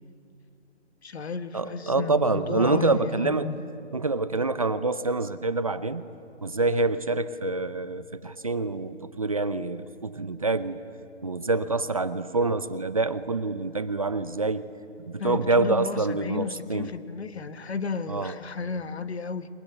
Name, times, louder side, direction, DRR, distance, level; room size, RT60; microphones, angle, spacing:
voice 1, 1.0-3.6 15.2-19.5, left 5 dB, 65° left, 11 dB, 1.5 m, -33 dB
voice 2, 1.5-3.5 3.9-6.0 6.4-10.8 11.2-14.7 15.1-16.9 18.1-18.3, right 3 dB, 30° right, 13 dB, 0.6 m, -26 dB
27.5 x 22.5 x 8.0 m, 2.7 s
hypercardioid pair, 170°, 35 cm